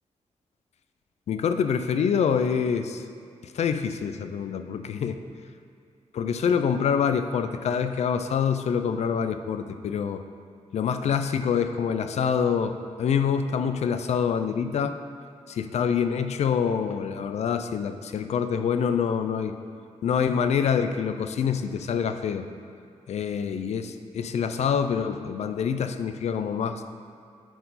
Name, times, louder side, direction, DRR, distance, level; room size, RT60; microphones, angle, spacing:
voice 1, 1.3-3.0 3.4-5.2 6.1-10.2 10.7-14.9 15.5-19.6 20.0-22.5 23.1-26.8, left 7 dB, 65° left, 9 dB, 0.4 m, -26 dB
10.0 x 4.6 x 4.1 m, 2.5 s
wide cardioid pair, 165°, 12 cm